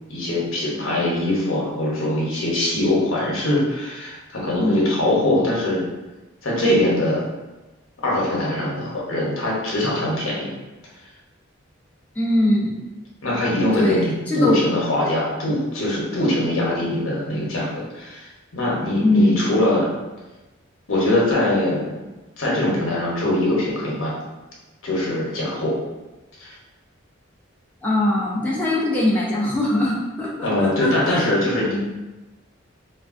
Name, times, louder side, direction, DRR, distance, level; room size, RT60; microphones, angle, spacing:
voice 1, 0.1-5.8 6.4-7.3 8.0-10.5 13.2-19.9 20.9-21.9 22.4-24.1 24.8-25.8 26.4-26.6 30.4-31.8, left 1 dB, 85° left, -4 dB, 0.9 m, -22 dB
voice 2, 12.2-12.8 13.7-14.6 15.0-15.1 19.0-19.5 27.8-31.2, left 1 dB, 10° left, -6 dB, 0.4 m, -21 dB
3.2 x 2.3 x 2.5 m, 1.1 s
head